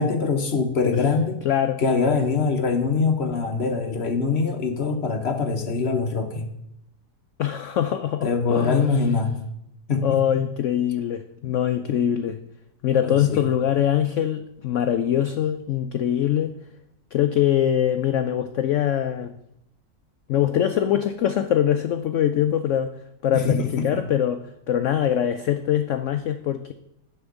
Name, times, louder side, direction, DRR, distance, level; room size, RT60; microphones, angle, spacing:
voice 1, 0.0-1.4 1.8-6.5 8.2-9.4 9.9-10.1 13.0-13.4 23.3-24.0, left 4 dB, 45° left, 5 dB, 1.0 m, -23 dB
voice 2, 1.4-1.8 7.4-8.9 10.0-12.4 12.8-16.5 17.1-19.3 20.3-26.7, left 10 dB, 80° left, 9 dB, 0.6 m, -23 dB
9.8 x 4.5 x 6.9 m, 0.82 s
omnidirectional pair, 1.8 m